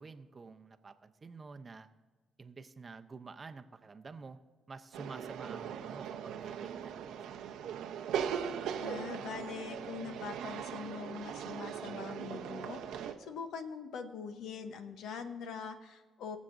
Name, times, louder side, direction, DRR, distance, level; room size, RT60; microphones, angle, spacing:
voice 1, 0.0-1.9 2.4-4.4 4.7-7.5, right 4 dB, 35° right, 8 dB, 0.7 m, -49 dB
sound 1, 4.9-13.1, right 8 dB, 90° right, 0.8 m, -39 dB
voice 2, 8.8-16.4, left 6 dB, 80° left, 8 dB, 0.9 m, -43 dB
21.5 x 7.2 x 2.6 m, 1.3 s
cardioid pair, 90°, 0 cm